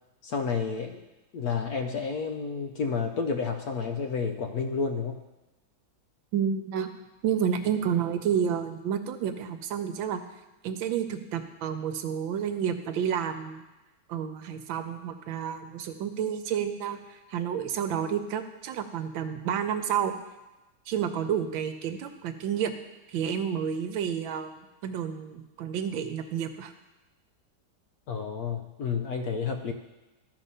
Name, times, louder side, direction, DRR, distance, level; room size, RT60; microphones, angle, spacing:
voice 1, 0.2-1.0 1.3-5.2 28.1-29.7, left 5 dB, 65° left, 5 dB, 1.0 m, -30 dB
voice 2, 6.3-6.9 7.2-10.2 10.6-13.6 14.1-20.1 20.9-22.7 23.1-24.5 24.8-26.7, right 8 dB, 90° right, 8 dB, 1.5 m, -30 dB
13.5 x 4.9 x 5.5 m, 1.0 s
omnidirectional pair, 2.1 m